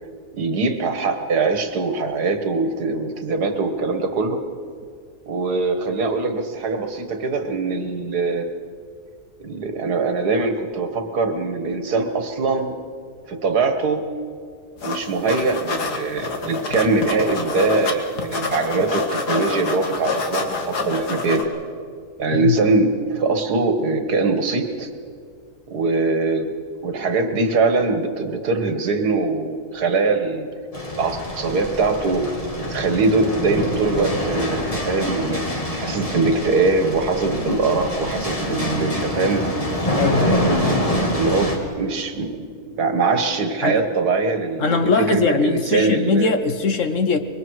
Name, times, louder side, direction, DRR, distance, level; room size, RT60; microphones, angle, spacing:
voice 1, 0.3-4.4 5.3-8.5 9.4-12.8 13.3-14.1 14.8-21.5 22.2-24.9 25.7-26.5 26.8-30.5 31.0-39.5 40.1-46.3, right 3 dB, 80° right, 7 dB, 2.0 m, -22 dB
sound 1, 14.8-15.0 15.3-17.9 18.2-21.4, left 3 dB, 85° left, 2.2 m, -26 dB
sound 2, 30.7-41.6, left 1 dB, 20° left, 2.3 m, -25 dB
voice 2, 39.9-40.4 43.6-43.8 44.6-47.2, left 4 dB, 55° left, 8 dB, 1.2 m, -20 dB
25.0 x 22.0 x 4.8 m, 2.1 s
omnidirectional pair, 1.7 m